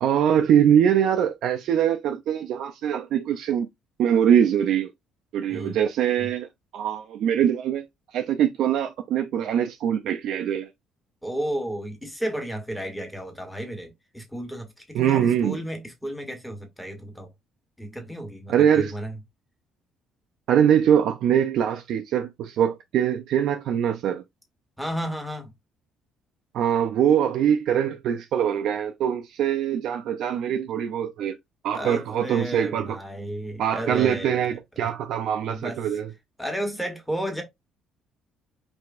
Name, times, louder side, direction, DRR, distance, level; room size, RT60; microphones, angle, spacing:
voice 1, 0.0-3.7 4.0-4.9 5.3-6.5 6.7-7.9 8.1-10.7 14.9-15.6 18.5-18.9 20.5-24.2 26.5-31.4 31.6-33.0 33.6-36.1, right 9 dB, 65° right, 0.5 m, -23 dB
voice 2, 5.5-5.8 6.2-6.3 11.2-17.3 17.8-19.2 24.8-25.5 31.7-34.4 35.5-35.8 36.4-37.4, right 1 dB, ahead, 1.4 m, -33 dB
4.8 x 3.4 x 2.5 m
cardioid pair, 150°, 0 cm